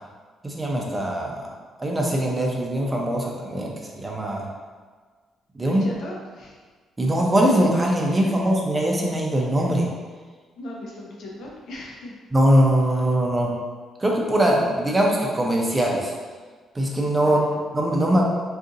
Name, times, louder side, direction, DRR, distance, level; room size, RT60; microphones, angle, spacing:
voice 1, 0.4-1.5 1.8-4.5 5.6-5.9 7.0-9.9 12.3-13.5 14.0-16.1 16.7-17.5 17.7-18.3, right 1 dB, 20° right, -1 dB, 0.6 m, -21 dB
voice 2, 5.6-6.6 8.1-8.3 10.6-12.2 17.2-17.6, left 1 dB, 70° left, -3 dB, 0.7 m, -38 dB
2.6 x 2.5 x 3.8 m, 1.5 s
cardioid pair, 90°, 0 cm